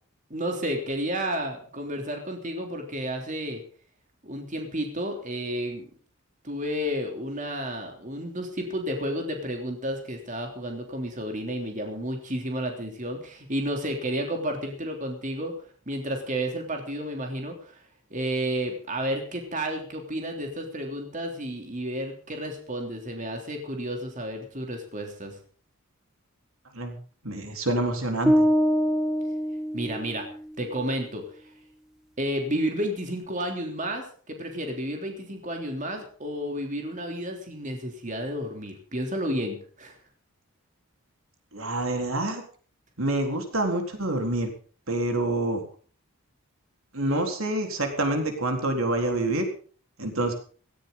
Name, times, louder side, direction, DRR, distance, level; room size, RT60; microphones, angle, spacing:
voice 1, 0.3-3.6 4.2-5.9 6.4-15.5 15.9-17.8 18.1-25.4 29.7-30.3 30.6-31.2 32.2-40.0, equal, 35° right, 3 dB, 3.3 m, -31 dB
voice 2, 27.2-28.5 41.5-42.4 43.0-44.5 44.9-45.6 46.9-49.4 50.0-50.3, right 1 dB, 75° right, 4 dB, 3.9 m, -27 dB
sound 1, 28.3-30.4, equal, ahead, 1.5 m, -24 dB
17.5 x 16.0 x 3.9 m, 0.43 s
head